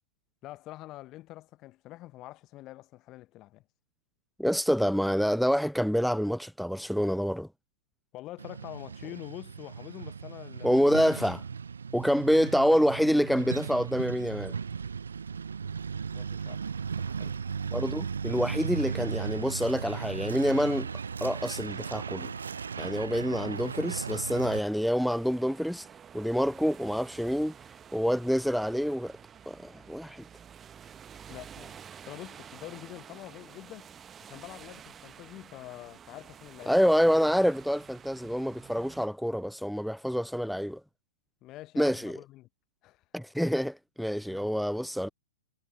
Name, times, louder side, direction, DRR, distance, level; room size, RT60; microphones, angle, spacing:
voice 1, 0.4-3.6 8.1-10.7 16.1-17.3 31.3-33.9 34.2-37.2 41.4-42.5 42.8-43.0 44.2-44.5, left 16 dB, 30° left, 0.9 m, -46 dB
voice 2, 4.4-7.5 10.6-11.4 11.9-14.5 17.7-20.9 21.2-22.3 22.8-25.9 26.1-27.5 27.9-29.2 29.5-30.2 36.7-40.8 41.8-42.2 43.1-45.1, equal, ahead, 0.3 m, -27 dB
Truck, 8.4-24.6, right 6 dB, 70° right, 0.5 m, -36 dB
sound 1, 22.3-39.1, right 8 dB, 20° right, 1.0 m, -50 dB
figure-of-eight pair, 110°, 0 cm